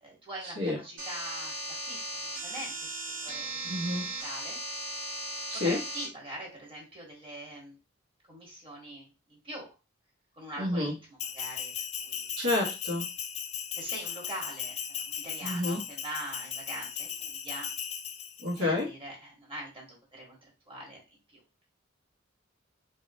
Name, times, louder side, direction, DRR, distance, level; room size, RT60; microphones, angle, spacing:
voice 1, 0.0-4.6 5.6-7.8 8.3-9.7 10.4-11.7 12.0-12.3 13.8-17.7 18.5-20.4 20.7-21.4, right 1 dB, 25° right, -2 dB, 1.2 m, -43 dB
sound 1, 1.0-6.1, right 1 dB, 90° right, 1.1 m, -37 dB
voice 2, 3.7-4.0 5.5-5.8 10.6-10.9 12.4-13.0 15.4-15.8 18.4-18.9, left 2 dB, 70° right, -1 dB, 1.2 m, -29 dB
Bell, 11.2-18.6, left 8 dB, 35° left, 0.3 m, -37 dB
3.1 x 2.7 x 2.6 m, 0.29 s
head